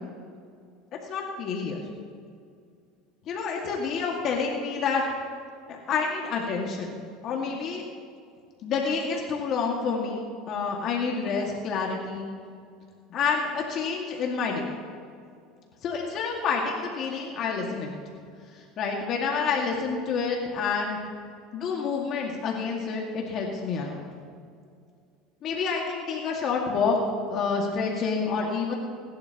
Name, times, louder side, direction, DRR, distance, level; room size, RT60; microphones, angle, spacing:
voice 1, 1.0-1.8 3.3-5.0 5.7-7.0 7.2-7.8 8.6-12.3 13.1-14.7 15.8-17.9 18.8-21.0 21.5-24.0 25.4-27.0 27.3-28.7, left 5 dB, 45° left, -1 dB, 1.9 m, -28 dB
25.5 x 11.5 x 2.9 m, 2.3 s
supercardioid pair, 125°, 0 cm